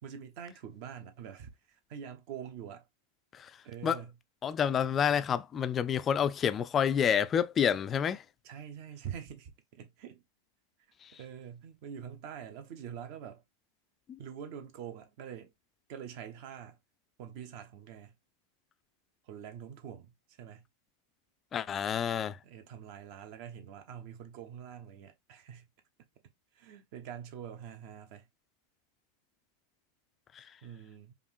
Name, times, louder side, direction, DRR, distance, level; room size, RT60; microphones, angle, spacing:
voice 1, 0.0-2.9 3.6-4.1 8.4-10.2 11.1-13.4 14.2-15.5 15.9-16.8 17.2-18.1 19.2-20.7 22.4-25.7 26.5-28.3 30.6-31.1, right 8 dB, 45° right, 0.9 m, -45 dB
voice 2, 4.4-8.2 11.0-11.2 14.1-14.2 21.5-22.4 30.3-30.4, left 8 dB, 25° left, 0.3 m, -29 dB
5.1 x 2.6 x 3.1 m
figure-of-eight pair, 90°, 0 cm